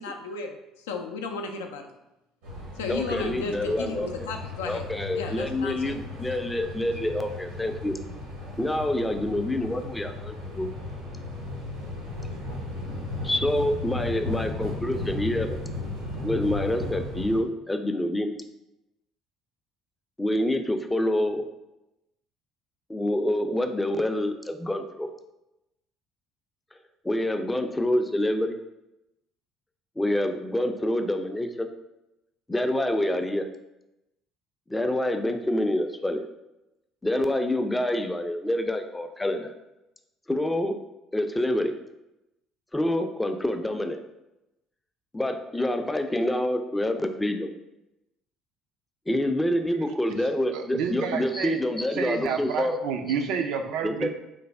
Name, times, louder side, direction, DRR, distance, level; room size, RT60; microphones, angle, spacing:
voice 1, 0.0-1.9 2.8-4.8 5.1-5.9, left 4 dB, 90° left, 4 dB, 0.3 m, -34 dB
sound 1, 2.4-17.4, left 2 dB, 90° right, 0.9 m, -36 dB
voice 2, 2.9-4.3 4.7-8.0 8.6-10.7 13.2-15.6 16.2-18.3 20.2-21.4 22.9-25.1 27.0-28.6 30.0-31.7 32.5-33.5 34.7-36.2 37.0-39.5 40.3-40.8 41.1-41.7 42.7-44.0 45.1-47.5 49.1-52.8 53.8-54.1, left 1 dB, 15° left, 7 dB, 0.4 m, -27 dB
voice 3, 50.5-51.6 51.9-54.1, right 6 dB, 75° right, 5 dB, 0.3 m, -29 dB
3.2 x 2.0 x 3.3 m, 0.93 s
hypercardioid pair, 65°, 0 cm